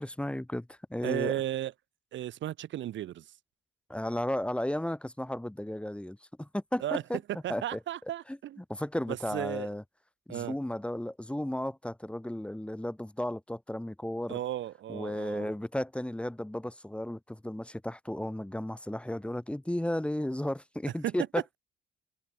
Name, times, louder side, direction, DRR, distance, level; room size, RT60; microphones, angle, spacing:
voice 1, 0.0-1.4 3.9-7.2 7.5-7.8 8.3-9.8 10.3-14.4 14.9-21.4, left 1 dB, 5° left, 1.4 m, -34 dB
voice 2, 1.0-1.7 2.1-3.3 6.8-7.0 7.4-8.6 9.1-9.7 10.3-10.5 14.3-15.5 21.0-21.1, right 12 dB, 70° right, 1.1 m, -34 dB
cardioid pair, 90°, 20 cm